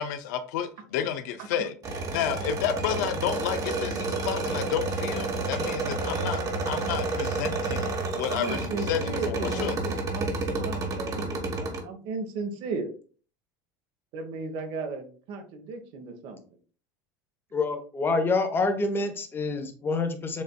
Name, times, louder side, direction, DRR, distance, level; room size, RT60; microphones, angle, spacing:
voice 1, 0.0-1.7 2.1-9.8, left 9 dB, 80° left, 0.6 m, -31 dB
sound 1, 1.8-11.8, right 3 dB, 40° right, 1.2 m, -30 dB
voice 2, 8.3-12.9 14.1-16.4, right 4 dB, 60° right, 1.1 m, -36 dB
voice 3, 17.5-20.4, left 3 dB, 25° left, 0.9 m, -27 dB
7.3 x 2.6 x 2.2 m
supercardioid pair, 105°, 9 cm